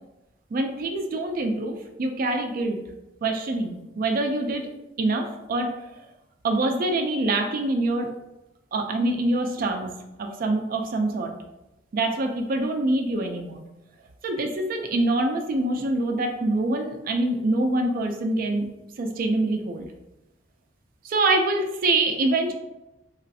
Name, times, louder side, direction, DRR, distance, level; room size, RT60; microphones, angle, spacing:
voice 1, 0.5-2.8 3.2-4.7 5.0-5.7 6.4-8.1 8.7-9.9 10.2-11.3 11.9-13.6 14.2-18.7 19.0-19.9 21.0-22.5, right 2 dB, 50° right, 4 dB, 0.3 m, -25 dB
3.0 x 2.4 x 2.6 m, 0.95 s
head